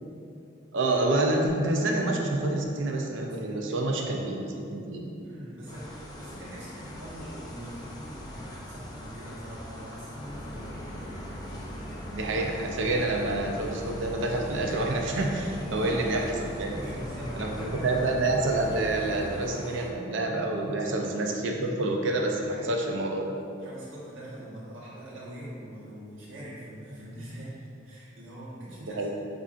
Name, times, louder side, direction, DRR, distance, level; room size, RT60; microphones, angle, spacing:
voice 1, 0.7-5.1 12.1-16.8 17.4-23.4 28.8-29.1, right 2 dB, 70° right, 1 dB, 0.4 m, -28 dB
voice 2, 3.3-4.2 5.2-10.8 15.6-16.0 16.6-18.2 20.8-21.0 22.5-22.7 23.6-29.1, equal, 85° right, -9 dB, 1.0 m, -43 dB
sound 1, 5.7-19.9, left 1 dB, 20° left, 0.3 m, -44 dB
sound 2, 10.2-19.5, equal, 25° right, 0.9 m, -40 dB
5.4 x 2.5 x 2.4 m, 2.6 s
head